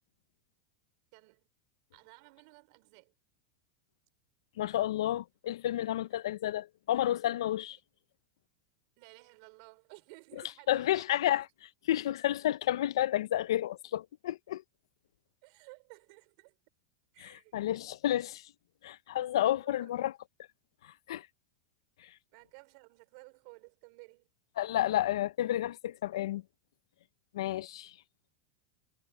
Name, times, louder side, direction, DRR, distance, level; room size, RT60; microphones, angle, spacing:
voice 1, 1.1-1.5 1.9-3.1 6.1-6.2 9.0-11.4 15.4-16.6 17.1-17.6 19.6-19.9 22.3-24.3, right 32 dB, 55° right, 4.8 m, -55 dB
voice 2, 4.6-7.8 10.7-11.4 11.9-14.6 17.2-18.5 18.8-20.1 20.8-21.3 22.0-22.1 24.6-26.4 27.3-27.9, left 13 dB, 85° left, 0.6 m, -31 dB
supercardioid pair, 135°, 3 cm